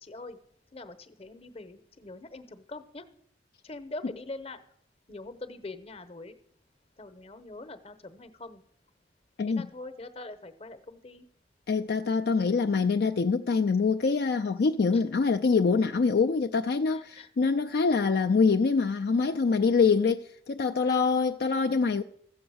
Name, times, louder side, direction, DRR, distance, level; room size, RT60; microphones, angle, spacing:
voice 1, 0.1-0.4 0.7-3.0 3.7-4.6 5.1-6.3 7.0-8.6 9.5-11.2, left 2 dB, 35° left, 0.9 m, -43 dB
voice 2, 9.4-9.7 11.7-22.0, left 4 dB, 60° left, 0.4 m, -25 dB
14.0 x 7.7 x 6.3 m
head